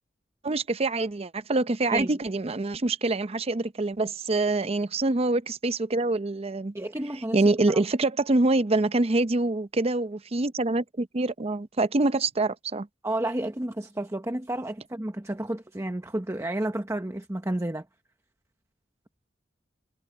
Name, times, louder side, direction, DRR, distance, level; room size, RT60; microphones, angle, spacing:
voice 1, 0.4-6.7 7.3-12.9, right 2 dB, 35° right, 0.6 m, -25 dB
voice 2, 6.7-7.5 13.0-17.8, right 1 dB, 15° right, 1.0 m, -31 dB
head